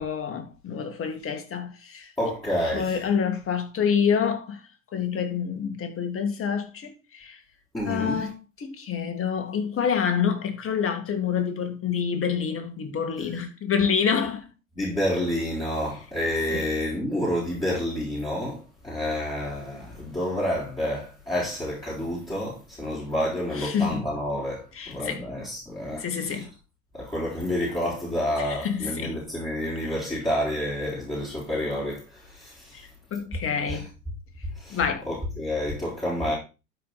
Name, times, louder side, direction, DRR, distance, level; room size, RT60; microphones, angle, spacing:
voice 1, 0.0-4.6 4.9-7.4 7.8-14.5 16.5-16.7 23.5-24.1 24.7-25.2 26.0-26.5 28.4-29.2 32.7-33.9 34.7-35.0, left 7 dB, 30° left, 2.1 m, -27 dB
voice 2, 2.2-3.0 7.7-8.2 14.7-18.6 18.8-26.5 26.9-32.0 32.3-32.7 33.7-33.8 34.6-34.8 35.1-36.3, left 1 dB, 10° left, 4.3 m, -29 dB
12.0 x 4.9 x 4.1 m
hypercardioid pair, 90°, 41 cm